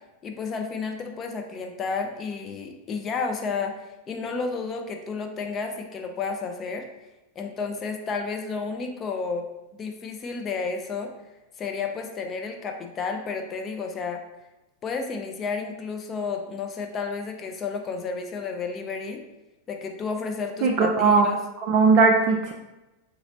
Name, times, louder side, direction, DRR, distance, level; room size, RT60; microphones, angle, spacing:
voice 1, 0.2-3.7 4.1-6.9 7.4-9.5 9.7-11.1 11.6-14.2 14.8-19.2 19.7-21.4, left 4 dB, 25° left, 4 dB, 0.4 m, -31 dB
voice 2, 20.6-21.3 21.6-22.5, right 4 dB, 40° right, 1 dB, 0.3 m, -19 dB
4.0 x 2.9 x 2.5 m, 1.0 s
figure-of-eight pair, 90°, 0 cm